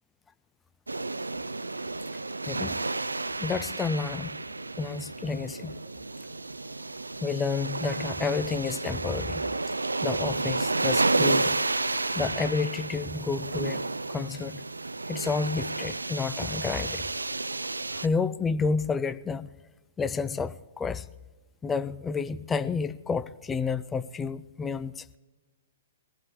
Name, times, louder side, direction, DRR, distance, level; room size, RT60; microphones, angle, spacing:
sound 1, 0.9-18.1, right 3 dB, 80° right, 0.4 m, -31 dB
voice 1, 2.5-2.8 3.4-4.4 4.8-5.7 7.2-9.4 10.0-11.6 12.1-14.6 15.1-17.0 17.9-19.5 20.0-21.1 21.6-25.1, left 5 dB, 15° left, 15 dB, 0.4 m, -30 dB
22.5 x 15.5 x 3.1 m, 1.2 s
figure-of-eight pair, 115°, 0 cm